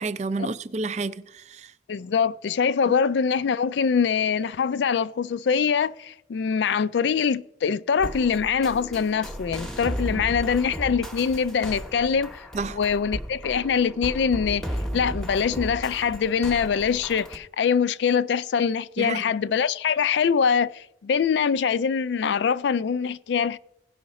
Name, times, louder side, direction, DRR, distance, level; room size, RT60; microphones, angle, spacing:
voice 1, 0.0-1.7 2.8-2.9 10.1-10.2 12.5-12.8 19.0-19.2, right 3 dB, 35° right, 0.4 m, -30 dB
voice 2, 1.9-12.5 12.7-14.6 14.9-23.6, left 6 dB, 70° left, 0.3 m, -23 dB
sound 1, 8.0-17.4, equal, 5° left, 0.8 m, -35 dB
16.5 x 5.7 x 4.1 m
head